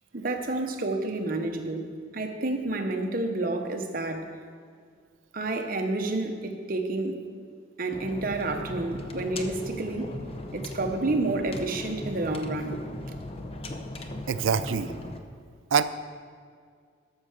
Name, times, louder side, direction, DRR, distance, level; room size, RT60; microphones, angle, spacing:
voice 1, 0.1-1.9 2.1-4.3 5.3-7.1 7.8-10.1 10.5-12.8, right 2 dB, 45° right, 4 dB, 0.9 m, -29 dB
sound 1, 7.9-15.2, left 1 dB, 30° left, 0.7 m, -38 dB
voice 2, 14.3-14.9 15.7-15.8, right 6 dB, 90° right, 13 dB, 0.5 m, -24 dB
12.5 x 5.6 x 6.6 m, 2.1 s
head